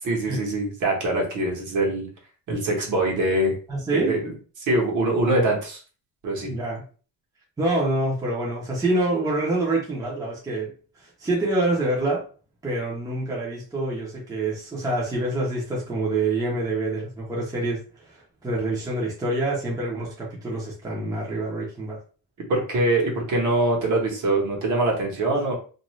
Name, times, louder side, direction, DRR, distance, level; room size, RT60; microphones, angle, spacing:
voice 1, 0.0-2.1 2.5-3.5 3.9-4.3 4.6-5.8 6.2-6.5 22.5-25.5, right 2 dB, 55° right, -1 dB, 1.1 m, -23 dB
voice 2, 3.7-4.2 6.4-6.8 7.6-10.7 11.0-12.3 12.6-22.0 25.3-25.4, right 2 dB, 10° right, -5 dB, 0.7 m, -26 dB
2.6 x 2.4 x 3.0 m, 0.38 s
cardioid pair, 175°, 36 cm